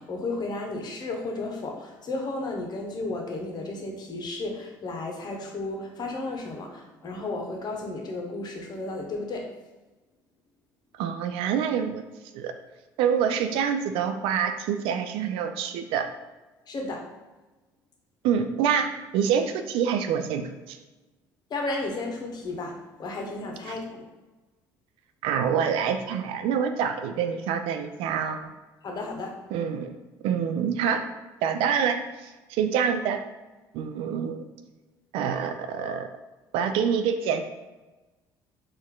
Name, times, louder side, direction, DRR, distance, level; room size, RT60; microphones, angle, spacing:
voice 1, 0.0-9.5 16.7-17.1 21.5-24.1 28.8-29.3, left 2 dB, 45° left, 2 dB, 1.0 m, -33 dB
voice 2, 11.0-12.0 12.3-12.5 13.0-16.1 18.2-18.9 19.1-20.8 23.7-23.8 25.2-28.4 29.5-29.9 30.2-31.1 31.4-33.2 33.7-34.5 35.1-36.1 36.5-37.5, right 7 dB, 70° right, 7 dB, 0.4 m, -26 dB
4.3 x 2.6 x 3.7 m, 1.2 s
hypercardioid pair, 60°, 10 cm